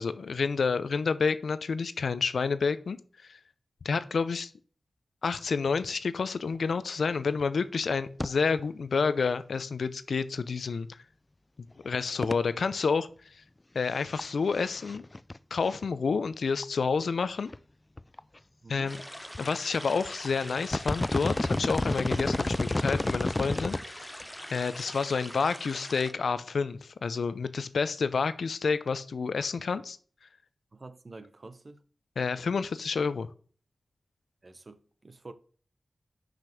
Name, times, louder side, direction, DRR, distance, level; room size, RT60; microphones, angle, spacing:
voice 1, 0.0-3.0 3.3-3.4 3.8-4.5 5.2-10.9 11.8-13.1 13.7-15.0 15.5-17.5 18.7-19.0 19.4-24.2 24.5-30.0 32.2-33.3, left 5 dB, 85° left, 0.5 m, -29 dB
sound 1, 7.4-7.5 7.7-7.9 8.2-8.3 8.6-8.7 10.9-11.0 12.2-12.3 13.9-14.3 14.6-15.4 15.7-15.8 16.6-16.7 17.2-17.3 17.5-17.6 18.0-18.4 19.3-19.6 20.1-20.3 20.6-23.8 24.2-24.3, left 2 dB, 30° left, 0.3 m, -30 dB
voice 2, 18.6-18.9 30.7-31.8 34.4-35.3, right 3 dB, 45° right, 0.8 m, -47 dB
sound 2, 18.9-26.1, equal, 5° left, 0.7 m, -43 dB
6.2 x 5.1 x 5.8 m
wide cardioid pair, 65°, 0 cm